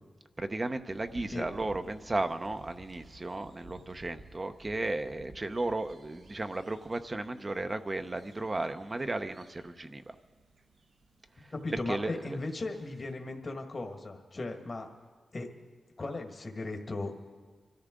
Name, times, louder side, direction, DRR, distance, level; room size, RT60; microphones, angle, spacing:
voice 1, 0.4-10.1 11.9-12.1, right 2 dB, 35° right, 8 dB, 0.8 m, -34 dB
sound 1, 0.9-13.1, right 2 dB, 75° right, 1.6 m, -56 dB
voice 2, 11.4-14.9 15.3-15.5 16.0-17.1, left 2 dB, 45° left, 3 dB, 1.7 m, -37 dB
24.5 x 13.5 x 3.8 m, 1.5 s
cardioid pair, 50°, 0 cm